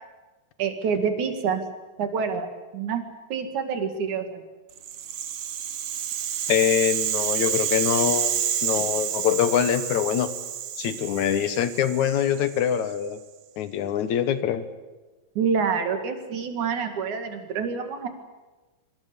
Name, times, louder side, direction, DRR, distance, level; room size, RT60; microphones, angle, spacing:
voice 1, 0.6-1.6 2.0-3.0 3.3-4.4 15.4-18.1, right 6 dB, 90° right, 7 dB, 3.6 m, -27 dB
Rattle (instrument), 4.8-13.0, right 9 dB, 60° right, 2.0 m, -29 dB
voice 2, 6.5-10.3 10.8-13.2 13.6-14.6, left 10 dB, 80° left, 12 dB, 2.7 m, -24 dB
25.0 x 24.5 x 7.0 m, 1.2 s
omnidirectional pair, 3.3 m